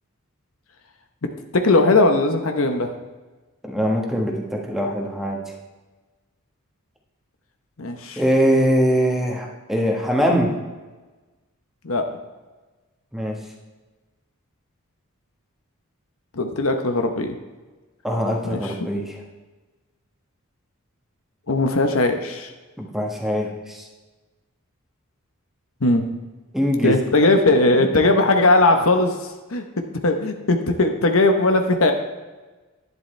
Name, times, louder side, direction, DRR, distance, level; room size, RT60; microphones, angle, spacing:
voice 1, 1.5-2.9 7.8-8.2 11.8-12.0 16.4-17.3 18.4-18.8 21.5-22.5 25.8-26.1 26.8-29.1 29.5-31.9, left 2 dB, 70° left, 6 dB, 1.0 m, -19 dB
voice 2, 3.6-5.4 8.2-10.5 13.1-13.4 18.0-19.1 22.8-23.8 26.5-27.0, equal, ahead, -1 dB, 1.4 m, -22 dB
11.0 x 10.5 x 3.3 m, 1.2 s
head